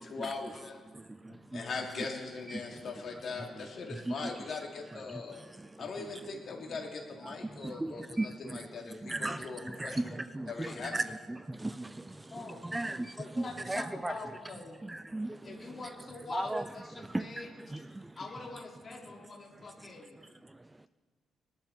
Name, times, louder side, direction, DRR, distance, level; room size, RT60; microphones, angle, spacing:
voice 1, 0.1-0.8 1.3-5.5 5.8-10.2 10.5-11.2, left 4 dB, 55° left, 3.1 m, -41 dB
voice 2, 0.9-1.6 2.5-2.6 4.1-4.2 5.1-5.2 5.5-5.8 7.2-8.6 9.0-11.1 11.4-14.1 14.8-15.6 16.3-16.6 17.0-17.4 17.7-18.1, right 2 dB, 15° right, 0.4 m, -37 dB
voice 3, 12.3-12.7 13.2-14.8 15.4-17.5 18.2-20.2, left 3 dB, 35° left, 3.1 m, -44 dB
20.5 x 11.5 x 4.4 m
cardioid pair, 90°, 0 cm